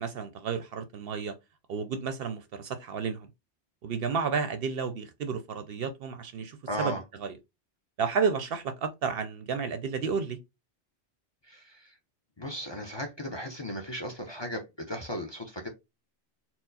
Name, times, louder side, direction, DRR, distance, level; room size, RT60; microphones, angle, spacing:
voice 1, 0.0-1.3 1.7-3.3 3.8-7.3 8.0-10.4, right 5 dB, 65° right, 0.7 m, -32 dB
voice 2, 6.7-7.0 11.4-11.9 12.4-15.7, equal, 30° left, 0.6 m, -36 dB
4.4 x 2.0 x 3.9 m
omnidirectional pair, 1.2 m